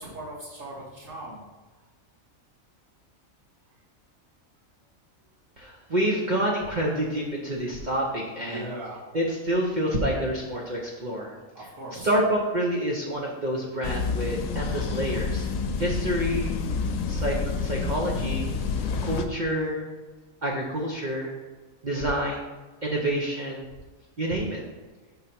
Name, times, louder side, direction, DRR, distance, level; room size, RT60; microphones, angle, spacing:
voice 1, 0.0-1.4 8.4-9.0 11.5-12.1, right 1 dB, 65° right, -7 dB, 2.7 m, -38 dB
voice 2, 5.6-8.7 9.1-11.7 11.9-15.5 15.8-16.5 17.1-18.5 19.0-19.9 20.4-21.3 21.8-22.5 22.8-23.7 24.2-24.6, right 1 dB, 40° right, -3 dB, 0.9 m, -28 dB
sound 1, 13.8-19.2, left 5 dB, 75° left, 1.0 m, -28 dB
5.8 x 4.0 x 5.8 m, 1.3 s
omnidirectional pair, 1.4 m